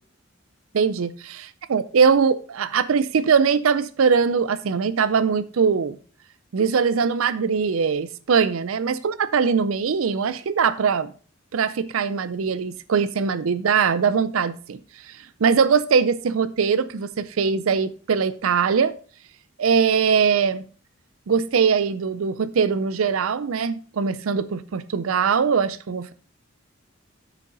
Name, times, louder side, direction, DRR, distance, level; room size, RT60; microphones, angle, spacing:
voice 1, 0.7-6.0 6.5-11.1 11.5-14.8 15.1-15.2 15.4-18.9 19.6-20.6 21.3-26.1, right 6 dB, 85° right, 14 dB, 0.5 m, -21 dB
9.2 x 6.6 x 4.0 m, 0.41 s
head